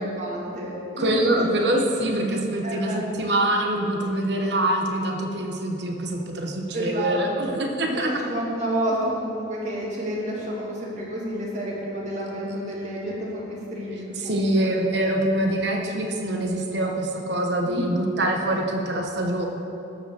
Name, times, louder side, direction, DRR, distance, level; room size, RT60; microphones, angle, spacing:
voice 1, 0.2-1.4 2.6-3.0 6.7-7.5 7.8-14.7 17.6-18.0, right 1 dB, 40° right, -5 dB, 2.4 m, -30 dB
voice 2, 1.0-8.1 14.2-19.5, right 1 dB, 60° right, 2 dB, 1.2 m, -25 dB
12.5 x 5.2 x 6.9 m, 2.9 s
head